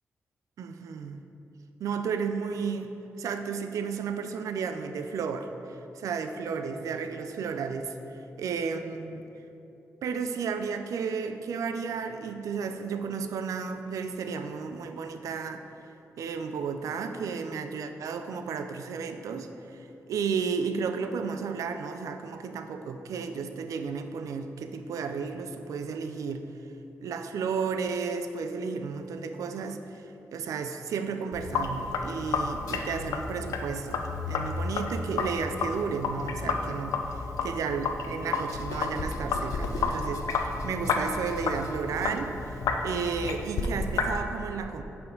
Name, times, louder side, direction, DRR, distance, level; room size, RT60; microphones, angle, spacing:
voice 1, 0.6-1.2 1.8-8.0 8.4-9.3 10.0-15.6 16.2-26.5 27.0-30.1 30.3-42.5 42.8-44.8, right 5 dB, 80° right, 8 dB, 0.4 m, -33 dB
Sink (filling or washing), 31.3-44.2, left 4 dB, 85° left, 0.4 m, -31 dB
5.9 x 5.4 x 3.8 m, 3.0 s
cardioid pair, 55°, 6 cm